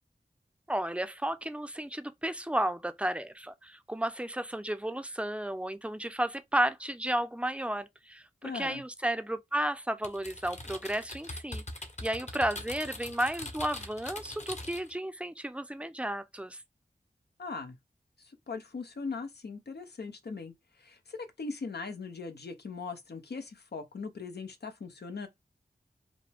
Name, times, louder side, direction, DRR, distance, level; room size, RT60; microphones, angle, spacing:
voice 1, 0.7-11.6 12.0-16.6, right 1 dB, 5° right, 0.5 m, -33 dB
voice 2, 8.4-8.8 17.4-17.8 18.2-25.3, left 4 dB, 80° left, 0.8 m, -40 dB
Typing, 10.0-14.9, left 2 dB, 45° left, 0.9 m, -42 dB
5.0 x 2.1 x 3.4 m
wide cardioid pair, 60°, 17 cm